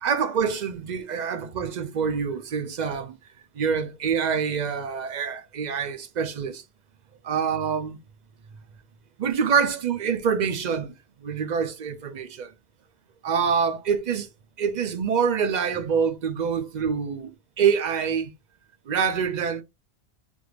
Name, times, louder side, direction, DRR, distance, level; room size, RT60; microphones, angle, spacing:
voice 1, 0.0-3.2 3.5-6.6 7.2-8.0 9.2-10.9 11.2-12.5 13.2-14.3 14.6-18.3 18.9-19.6, right 6 dB, 55° right, 0.5 m, -26 dB
3.4 x 2.4 x 3.2 m
omnidirectional pair, 1.1 m